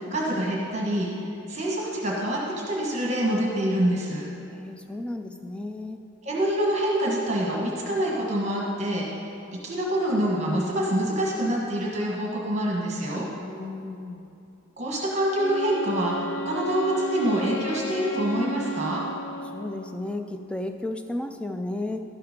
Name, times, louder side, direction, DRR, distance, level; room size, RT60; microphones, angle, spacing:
voice 1, 0.1-1.1 1.5-2.4 2.7-4.3 6.2-9.1 9.6-13.3 14.8-19.0, right 1 dB, 35° right, -3 dB, 1.3 m, -26 dB
voice 2, 4.5-6.0 13.4-14.3 19.5-22.0, left 2 dB, 5° left, 6 dB, 0.3 m, -33 dB
Wind instrument woodwind instrument, 15.3-20.2, right 1 dB, 60° left, 0.5 m, -34 dB
12.0 x 5.8 x 5.1 m, 2.7 s
head